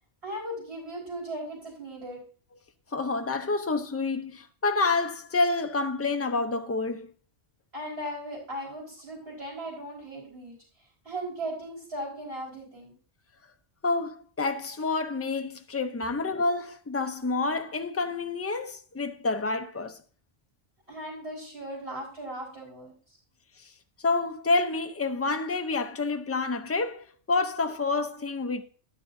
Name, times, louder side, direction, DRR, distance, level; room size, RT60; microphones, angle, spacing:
voice 1, 0.2-2.2 7.7-10.6 11.0-13.0 20.9-22.9, right 1 dB, 60° right, 4.7 m, -37 dB
voice 2, 2.9-7.1 13.8-20.0 24.0-28.6, left 3 dB, 20° left, 0.5 m, -28 dB
13.0 x 10.5 x 2.6 m
omnidirectional pair, 1.2 m